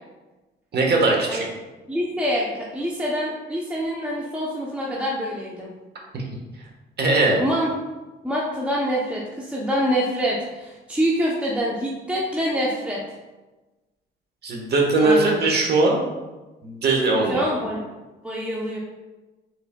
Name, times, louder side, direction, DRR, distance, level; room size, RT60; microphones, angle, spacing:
voice 1, 0.7-1.4 6.1-6.2 7.0-7.4 14.4-16.0 16.6-17.5, right 2 dB, 55° right, 0 dB, 1.3 m, -20 dB
voice 2, 1.9-5.7 7.4-7.7 8.2-13.0 15.0-15.4 17.3-17.8 18.2-18.8, equal, 5° right, -4 dB, 0.7 m, -25 dB
5.8 x 3.8 x 2.2 m, 1.1 s
cardioid pair, 90°, 20 cm